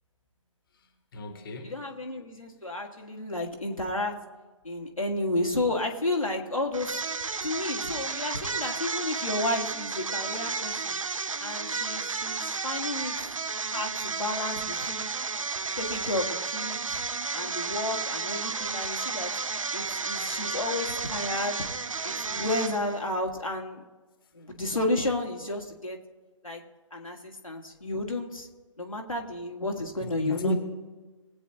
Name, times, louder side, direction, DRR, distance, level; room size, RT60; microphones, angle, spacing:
voice 1, 1.1-1.8 19.8-19.9 30.0-30.5, left 1 dB, 45° left, 5 dB, 1.4 m, -32 dB
voice 2, 1.6-4.1 4.6-7.0 7.4-11.0 11.4-13.1 13.7-15.1 15.8-17.0 17.3-19.3 19.7-21.6 22.0-23.8 24.3-26.0 26.4-26.6 26.9-28.5 28.8-30.6, left 2 dB, 90° left, 0 dB, 1.9 m, -32 dB
sound 1, 6.7-23.1, right 4 dB, 75° right, 0.7 m, -32 dB
20.0 x 8.7 x 2.8 m, 1.3 s
figure-of-eight pair, 140°, 17 cm